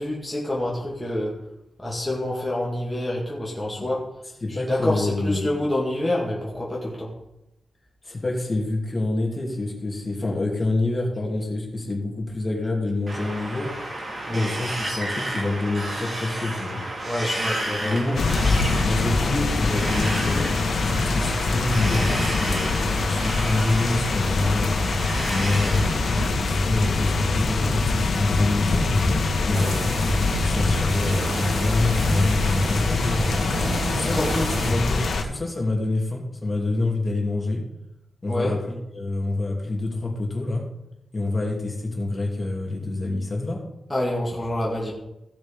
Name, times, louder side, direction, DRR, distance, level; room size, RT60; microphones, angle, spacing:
voice 1, 0.0-1.4 1.8-4.0 4.5-7.1 14.3-14.5 17.0-18.2 29.4-29.7 34.1-34.6 38.3-38.6 43.9-44.9, left 1 dB, 10° left, -5 dB, 2.3 m, -27 dB
voice 2, 4.4-5.5 8.0-13.7 14.3-16.8 17.4-18.3 18.8-20.5 20.8-25.0 25.3-28.9 29.4-33.2 33.9-34.2 34.6-37.6 38.2-40.7 41.1-43.6, left 2 dB, 25° left, -1 dB, 2.9 m, -27 dB
Wind, 13.1-26.2, right 1 dB, 40° right, 4.3 m, -32 dB
sound 1, 18.2-35.2, left 3 dB, 70° left, 1.9 m, -23 dB
sound 2, 29.5-34.7, right 3 dB, 60° right, 1.5 m, -32 dB
15.5 x 6.2 x 5.3 m, 0.88 s
wide cardioid pair, 110°, 0 cm